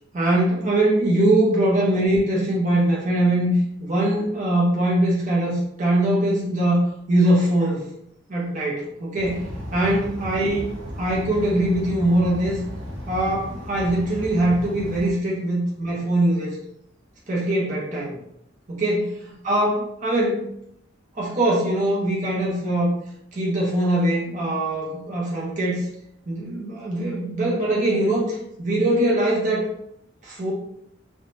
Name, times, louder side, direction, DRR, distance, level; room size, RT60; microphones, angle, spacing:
voice 1, 0.1-3.5 3.8-7.8 8.3-10.7 11.0-12.6 13.1-16.6 17.3-18.2 18.7-20.5 21.2-23.0 23.3-25.9 26.3-29.6 30.2-30.5, right 1 dB, 40° right, -5 dB, 0.7 m, -22 dB
sound 1, 9.2-15.1, equal, 70° right, 0.8 m, -35 dB
2.6 x 2.2 x 3.0 m, 0.75 s
head